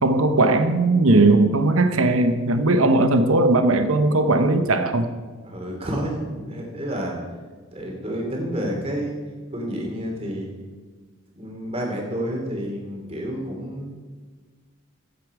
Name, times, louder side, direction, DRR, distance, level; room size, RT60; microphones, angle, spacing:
voice 1, 0.0-5.1, right 2 dB, 75° right, 8 dB, 1.0 m, -18 dB
voice 2, 5.4-7.2 7.7-9.2 9.5-10.5 11.3-13.9, equal, 25° right, 0 dB, 2.8 m, -29 dB
16.0 x 8.3 x 4.9 m, 1.5 s
head